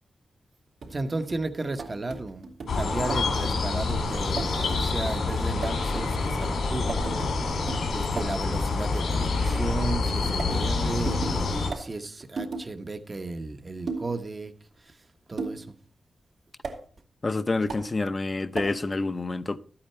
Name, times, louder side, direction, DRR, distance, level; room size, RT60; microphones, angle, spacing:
sound 1, 0.8-8.5 10.1-12.7 13.9-14.2 15.4-15.7 16.6-16.8 17.7-17.9 18.6-18.8, right 4 dB, 80° right, 2.8 m, -38 dB
voice 1, 0.9-14.5 14.8-15.0 15.3-15.7, right 3 dB, 30° right, 1.0 m, -35 dB
sound 2, 2.7-11.7, left 3 dB, 85° left, 3.0 m, -27 dB
voice 2, 17.2-19.6, left 3 dB, 30° left, 0.7 m, -28 dB
13.0 x 8.8 x 4.4 m
wide cardioid pair, 95°, 0 cm